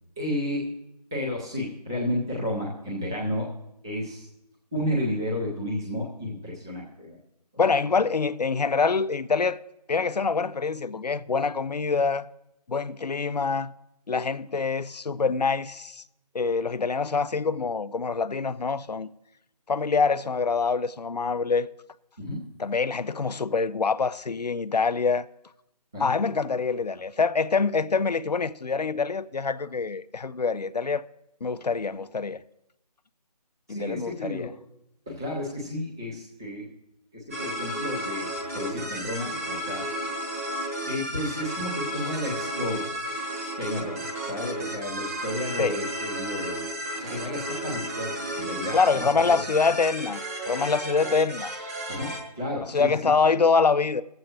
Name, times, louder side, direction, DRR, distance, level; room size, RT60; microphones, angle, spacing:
voice 1, 0.2-0.7 1.1-3.5 3.8-4.3 4.7-7.2 22.2-22.4 25.9-26.1 33.7-34.5 35.1-36.7 37.1-39.9 40.8-42.8 43.6-46.6 46.9-49.4 51.9-53.1, left 1 dB, 5° right, 0.6 m, -32 dB
voice 2, 7.6-9.6 9.9-12.3 12.7-13.7 14.1-16.0 16.3-19.1 19.7-21.7 22.6-25.3 26.0-31.0 31.4-32.4 33.7-34.5 45.6-45.8 48.7-50.2 50.5-51.5 52.6-54.0, left 4 dB, 80° left, 0.5 m, -25 dB
sound 1, 37.3-52.2, right 1 dB, 20° right, 1.1 m, -33 dB
20.5 x 7.7 x 2.9 m
figure-of-eight pair, 160°, 21 cm